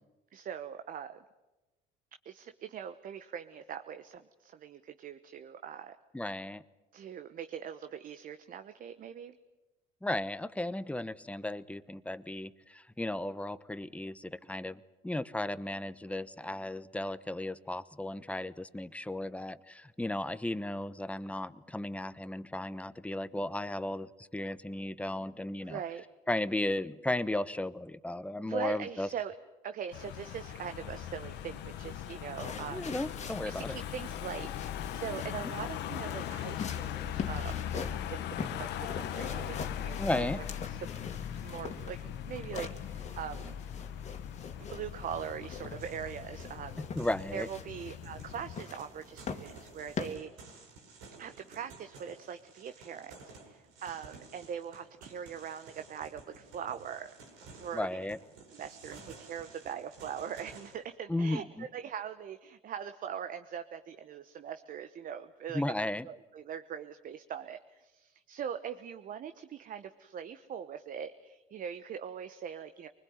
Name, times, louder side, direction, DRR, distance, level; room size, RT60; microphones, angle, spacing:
voice 1, 0.3-1.2 2.2-6.0 6.9-9.3 25.6-26.0 28.4-29.3 29.6-32.9 33.4-34.5 34.9-40.9 41.4-43.6 44.7-46.8 47.3-50.3 51.2-57.1 57.5-58.1 58.5-65.6 66.0-72.9, right 8 dB, 50° right, 9 dB, 1.1 m, -42 dB
voice 2, 6.1-6.6 10.0-25.8 26.3-29.1 32.7-33.7 40.0-40.4 46.8-47.5 57.7-58.2 61.1-61.6 65.5-66.1, left 1 dB, 5° left, 15 dB, 1.0 m, -35 dB
Car passing by / Engine, 29.9-48.6, left 10 dB, 70° left, 1.3 m, -40 dB
sound 1, 31.7-50.2, left 5 dB, 40° left, 2.4 m, -44 dB
sound 2, 45.8-60.8, right 3 dB, 90° right, 6.5 m, -54 dB
24.0 x 20.5 x 9.5 m, 1.1 s
supercardioid pair, 90°, 18 cm